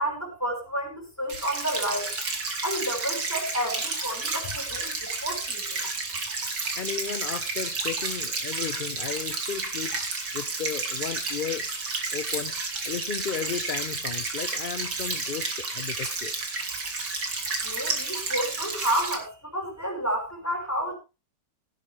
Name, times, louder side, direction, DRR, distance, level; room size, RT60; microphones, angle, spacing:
voice 1, 0.0-2.1 2.6-5.8 17.6-20.9, right 1 dB, 10° left, 1 dB, 5.4 m, -30 dB
sound 1, 1.3-19.2, right 3 dB, 80° right, 3.3 m, -31 dB
voice 2, 6.7-10.0 10.3-11.7 12.1-12.6 12.8-16.3, left 7 dB, 55° left, 12 dB, 0.5 m, -34 dB
17.0 x 10.5 x 3.5 m, 0.29 s
omnidirectional pair, 1.8 m